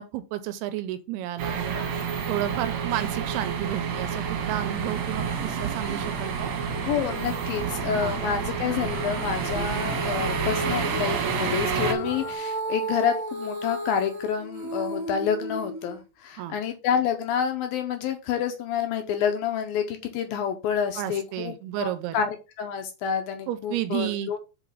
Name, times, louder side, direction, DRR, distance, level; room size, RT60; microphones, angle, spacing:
voice 1, 0.0-1.8 2.3-6.5 8.0-8.2 16.4-16.6 21.0-22.2 23.5-24.3, right 13 dB, 80° right, 2.5 m, -32 dB
sound 1, 1.4-11.9, right 7 dB, 60° right, 2.1 m, -29 dB
sound 2, 4.8-12.3, left 6 dB, 55° left, 2.0 m, -43 dB
voice 2, 6.8-24.4, left 8 dB, 75° left, 2.3 m, -28 dB
Female singing, 9.5-16.0, right 1 dB, 35° right, 1.1 m, -33 dB
6.2 x 5.0 x 5.3 m
omnidirectional pair, 4.8 m